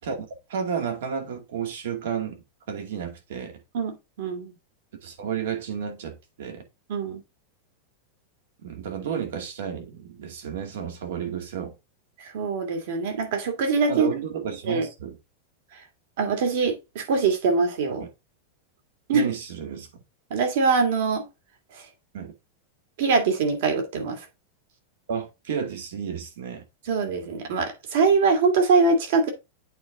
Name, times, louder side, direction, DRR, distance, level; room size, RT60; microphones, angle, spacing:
voice 1, 0.5-3.6 5.0-6.6 8.6-11.7 13.9-15.2 18.0-18.1 19.1-19.9 22.1-22.3 25.1-26.6, right 7 dB, 75° right, 2.4 m, -32 dB
voice 2, 3.7-4.5 6.9-7.2 12.2-14.1 14.7-14.9 15.7-15.8 16.2-18.0 19.1-19.3 20.3-21.3 21.7-21.9 23.0-24.2 26.9-29.3, right 4 dB, 60° right, 2.4 m, -23 dB
8.5 x 4.4 x 3.7 m
supercardioid pair, 170°, 0 cm